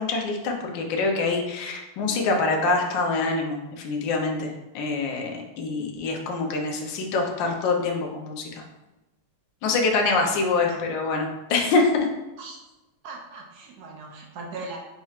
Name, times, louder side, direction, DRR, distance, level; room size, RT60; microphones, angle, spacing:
voice 1, 0.0-8.6 9.6-12.1, left 3 dB, 70° left, 2 dB, 1.3 m, -25 dB
voice 2, 13.0-14.8, right 3 dB, 70° right, -1 dB, 0.9 m, -39 dB
4.3 x 4.2 x 2.4 m, 1.0 s
omnidirectional pair, 2.3 m